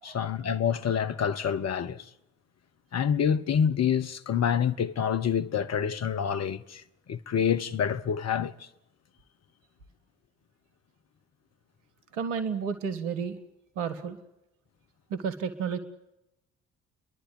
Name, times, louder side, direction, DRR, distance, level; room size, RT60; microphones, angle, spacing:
voice 1, 0.0-2.0 2.9-6.8 7.1-8.5, left 8 dB, 45° left, 1.1 m, -27 dB
voice 2, 12.1-13.4 13.8-14.2 15.1-15.8, right 6 dB, 75° right, 1.3 m, -31 dB
29.0 x 11.5 x 9.4 m
figure-of-eight pair, 45°, 38 cm